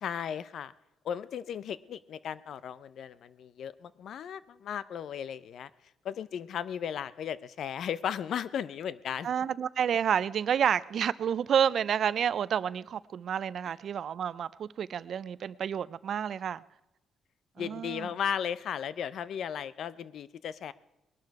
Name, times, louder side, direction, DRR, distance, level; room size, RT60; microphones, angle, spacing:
voice 1, 0.0-0.7 1.0-5.7 6.0-9.3 17.6-20.7, left 8 dB, 65° left, 0.6 m, -35 dB
voice 2, 9.2-16.6 17.6-18.1, right 8 dB, 60° right, 0.4 m, -29 dB
20.0 x 11.5 x 4.7 m
cardioid pair, 90°, 0 cm